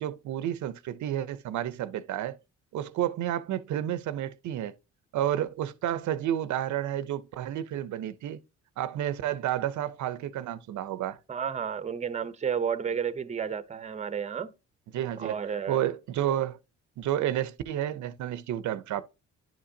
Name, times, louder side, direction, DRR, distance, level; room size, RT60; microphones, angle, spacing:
voice 1, 0.0-2.4 2.7-4.7 5.1-8.4 8.8-11.2 14.9-15.4 15.7-16.6 17.0-19.0, right 11 dB, 70° right, 0.6 m, -30 dB
voice 2, 11.3-14.5 15.2-15.8, right 7 dB, 25° right, 0.7 m, -31 dB
10.5 x 5.8 x 2.7 m
cardioid pair, 90°, 30 cm